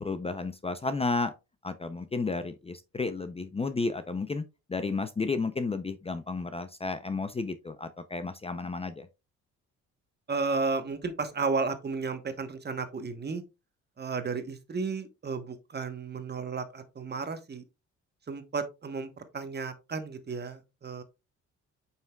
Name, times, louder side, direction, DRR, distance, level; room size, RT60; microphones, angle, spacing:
voice 1, 0.0-1.3 1.6-4.4 4.7-9.1, left 3 dB, 20° left, 0.6 m, -32 dB
voice 2, 10.3-13.4 14.0-17.6 18.3-21.0, right 4 dB, 35° right, 1.2 m, -33 dB
7.5 x 5.7 x 2.3 m
cardioid pair, 90°, 30 cm